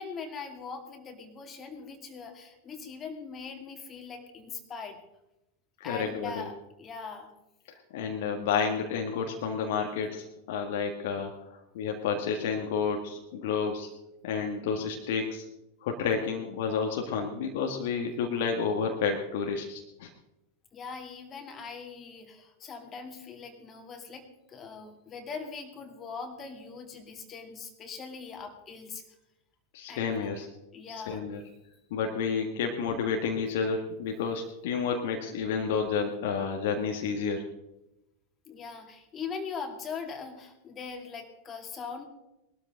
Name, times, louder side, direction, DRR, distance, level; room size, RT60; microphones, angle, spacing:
voice 1, 0.0-5.0 5.8-7.3 20.7-29.0 29.9-30.3 30.7-31.3 38.5-42.0, left 5 dB, 25° left, 4 dB, 2.6 m, -41 dB
voice 2, 5.8-6.5 7.9-11.3 11.7-13.9 14.2-15.4 15.8-20.1 29.7-30.5 30.9-31.4 31.9-37.4, left 6 dB, 50° left, 3 dB, 1.6 m, -30 dB
21.0 x 13.0 x 3.8 m, 0.91 s
figure-of-eight pair, 90°, 0 cm